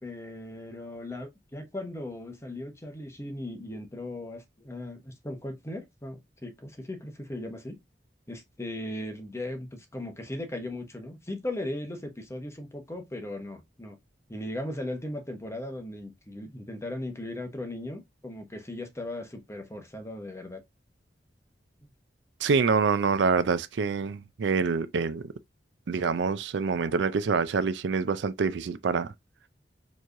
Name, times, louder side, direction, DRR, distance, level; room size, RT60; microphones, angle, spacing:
voice 1, 0.0-7.8 8.3-14.0 14.3-20.6, left 1 dB, 15° left, 1.0 m, -38 dB
voice 2, 22.4-25.3 25.9-29.1, right 5 dB, 80° right, 0.4 m, -26 dB
4.5 x 3.0 x 2.5 m
head